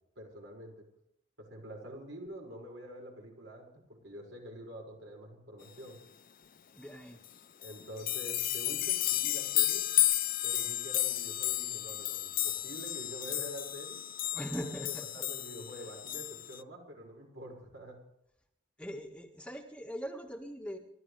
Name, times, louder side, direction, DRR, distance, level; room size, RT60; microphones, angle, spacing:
voice 1, 0.2-0.8 1.4-6.0 7.6-9.8 10.4-14.0 14.6-18.0, equal, 70° right, 0 dB, 5.8 m, -47 dB
voice 2, 6.7-7.2 14.3-15.1 18.8-20.8, equal, 5° left, 2 dB, 1.6 m, -41 dB
sound 1, 7.2-7.3 7.6-16.6, left 15 dB, 45° left, 0.5 m, -32 dB
29.5 x 13.0 x 3.4 m, 0.80 s
head